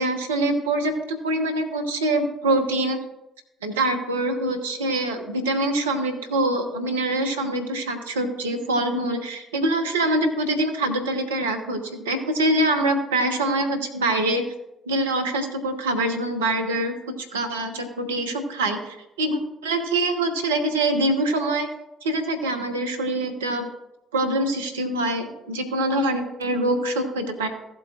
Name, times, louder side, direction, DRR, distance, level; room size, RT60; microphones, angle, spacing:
voice 1, 0.0-3.0 3.6-14.4 14.9-16.9 17.3-21.7 22.0-23.7 24.1-27.5, right 1 dB, 90° right, 6 dB, 1.0 m, -24 dB
15.0 x 8.2 x 2.4 m, 0.91 s
hypercardioid pair, 50°, 0 cm